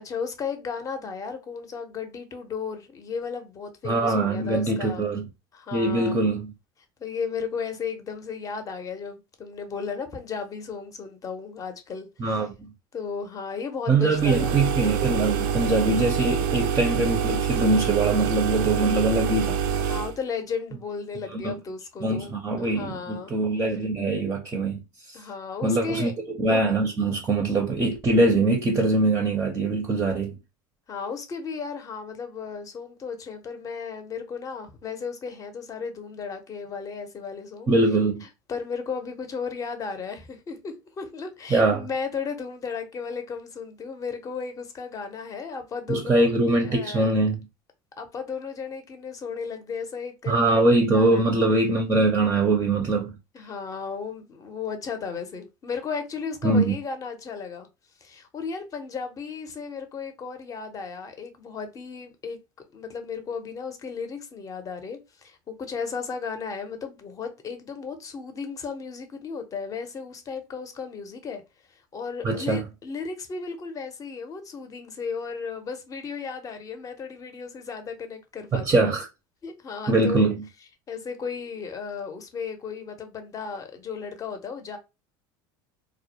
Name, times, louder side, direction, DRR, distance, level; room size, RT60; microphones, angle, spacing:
voice 1, 0.0-5.1 5.5-6.3 7.0-12.5 12.9-14.6 19.9-23.3 25.1-26.1 30.9-37.7 38.2-46.3 46.6-47.1 48.0-50.6 50.9-51.2 53.3-57.7 58.0-62.4 62.7-71.4 71.7-78.9 79.4-80.2 80.9-84.8, left 5 dB, 30° left, 0.6 m, -35 dB
voice 2, 3.8-5.3 5.7-6.5 12.2-12.7 13.9-19.6 21.3-21.6 22.0-24.8 25.1-25.2 25.6-26.1 26.4-30.4 37.7-38.2 41.5-41.9 45.9-47.4 50.3-53.1 56.4-56.8 72.2-72.6 78.5-79.1 79.9-80.4, right 2 dB, 20° right, 0.5 m, -22 dB
sound 1, 14.1-20.2, right 7 dB, 75° right, 0.4 m, -26 dB
2.3 x 2.1 x 2.8 m
supercardioid pair, 105°, 11 cm